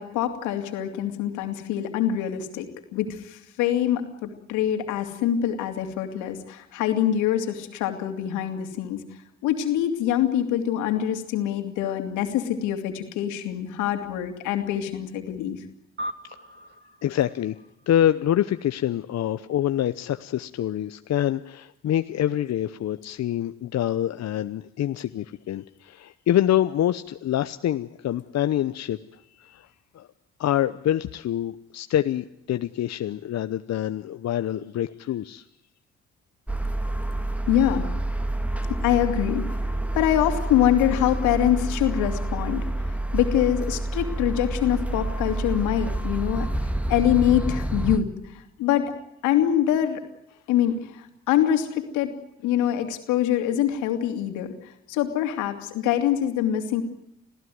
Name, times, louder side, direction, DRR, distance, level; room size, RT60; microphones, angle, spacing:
voice 1, 0.0-9.0 9.4-15.6 37.5-37.9 38.8-39.6 39.9-48.9 49.2-50.0 50.5-52.1 52.4-54.5 54.9-56.8, left 11 dB, 85° left, 6 dB, 2.9 m, -24 dB
sound 1, 16.0-18.7, equal, 35° right, 2.3 m, -40 dB
voice 2, 17.0-17.6 17.9-29.0 29.4-29.7 29.9-30.1 30.4-35.4, left 11 dB, 60° left, 10 dB, 0.9 m, -26 dB
sound 2, 36.5-48.0, right 1 dB, 5° right, 2.0 m, -28 dB
26.5 x 15.5 x 9.5 m, 0.83 s
supercardioid pair, 55°, 29 cm